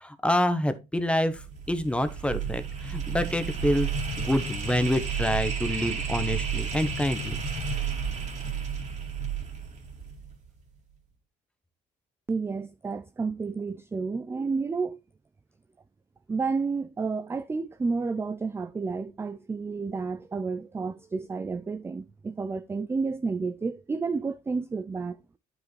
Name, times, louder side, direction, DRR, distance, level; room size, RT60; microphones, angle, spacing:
voice 1, 0.0-1.4 1.7-3.9 4.2-7.4, left 1 dB, 5° left, 0.9 m, -27 dB
sound 1, 1.3-10.4, right 6 dB, 45° right, 2.3 m, -32 dB
voice 2, 12.3-15.0 16.3-25.2, right 4 dB, 15° right, 0.3 m, -31 dB
9.4 x 5.1 x 3.1 m
cardioid pair, 110°, 17 cm